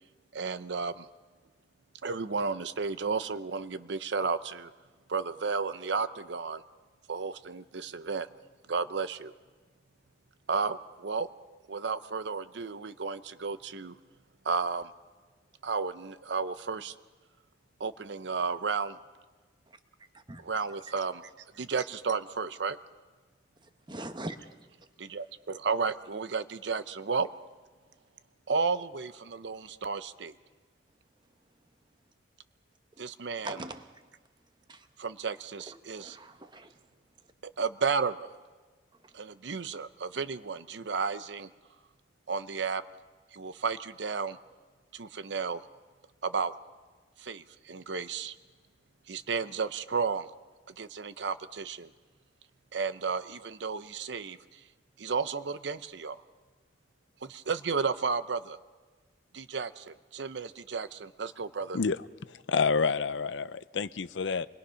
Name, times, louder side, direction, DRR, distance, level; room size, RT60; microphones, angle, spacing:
voice 1, 0.3-1.1 2.0-4.7 5.1-6.6 7.1-8.3 8.7-9.3 10.5-11.3 11.7-14.0 14.4-14.9 15.6-16.9 17.8-19.0 20.4-21.2 21.6-22.8 25.0-27.3 28.5-30.3 33.0-33.6 35.0-36.2 37.4-38.3 39.1-41.5 42.3-42.8 43.3-44.4 44.9-45.6 46.2-46.5 47.2-48.3 49.1-50.3 50.8-51.9 52.7-54.4 55.0-56.2 57.2-58.6 59.3-61.8, right 5 dB, 70° right, 0.7 m, -33 dB
voice 2, 23.6-24.5 33.4-33.9 34.7-34.9 35.7-36.8 39.0-39.1, right 2 dB, 25° right, 1.1 m, -42 dB
voice 3, 61.7-64.5, left 5 dB, 90° left, 0.6 m, -29 dB
25.5 x 21.0 x 5.7 m
head